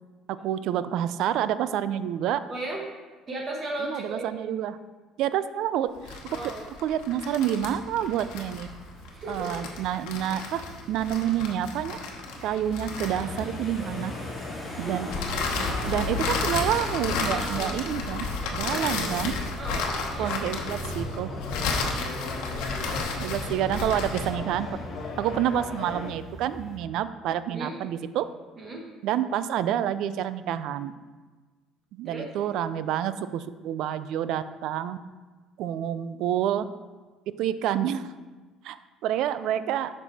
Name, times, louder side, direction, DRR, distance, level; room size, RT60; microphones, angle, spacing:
voice 1, 0.3-2.4 3.8-4.8 5.2-6.2 6.8-8.7 9.3-10.6 10.9-12.0 12.4-14.1 14.8-15.1 15.9-18.3 18.5-19.3 20.2-21.3 23.2-24.8 25.2-28.3 29.0-30.9 31.9-35.0 35.6-36.6 37.4-38.1 38.6-38.8 39.0-39.9, right 10 dB, 65° right, 14 dB, 0.3 m, -28 dB
voice 2, 2.5-2.8 3.3-4.4 6.3-6.6 9.1-9.5 14.7-15.1 17.3-17.8 19.6-20.4 22.5-23.0 27.5-27.7 28.6-28.8 32.0-32.3, right 2 dB, 30° right, 1 dB, 1.0 m, -36 dB
sound 1, 6.0-13.8 15.1-24.4, left 4 dB, 90° left, 1.0 m, -32 dB
sound 2, 7.6-26.8, left 1 dB, 10° left, 2.0 m, -40 dB
sound 3, 13.0-26.1, left 3 dB, 50° left, 1.2 m, -39 dB
7.4 x 5.4 x 4.1 m, 1.3 s
cardioid pair, 135°, 0 cm